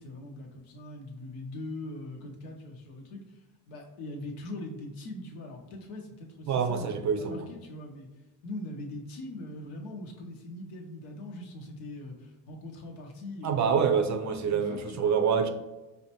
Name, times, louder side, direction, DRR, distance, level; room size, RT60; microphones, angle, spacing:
voice 1, 0.0-6.9 7.2-8.1 8.4-13.9 14.4-15.1, left 1 dB, 85° left, 2 dB, 0.9 m, -41 dB
voice 2, 6.5-7.5 13.4-15.5, right 6 dB, 40° right, 6 dB, 0.4 m, -26 dB
4.9 x 2.1 x 2.9 m, 1.1 s
hypercardioid pair, 65°, 48 cm